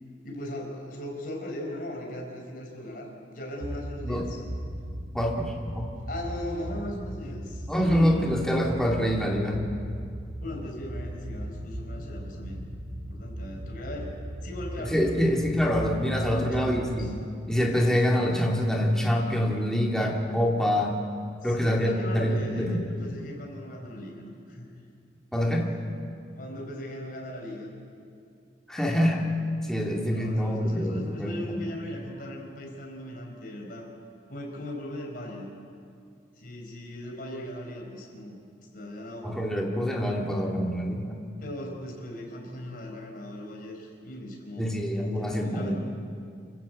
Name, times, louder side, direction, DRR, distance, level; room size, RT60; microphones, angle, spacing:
voice 1, 0.2-4.4 6.1-8.3 10.4-12.6 13.1-14.1 14.4-15.4 16.0-17.1 17.9-18.0 21.4-24.7 25.3-25.7 26.4-27.7 30.1-33.9 34.3-35.5 36.4-38.4 38.7-39.3 41.4-44.7 45.0-45.7, left 1 dB, 50° left, 0 dB, 5.0 m, -38 dB
sound 1, 3.6-17.0, equal, 65° right, 4.4 m, -38 dB
voice 2, 5.1-5.9 7.7-9.6 14.8-17.2 17.5-21.0 21.4-22.8 25.3-25.7 28.7-29.3 29.6-31.6 39.2-41.2 44.6-45.7, equal, 5° left, -1 dB, 2.4 m, -26 dB
26.0 x 15.0 x 8.4 m, 2.3 s
head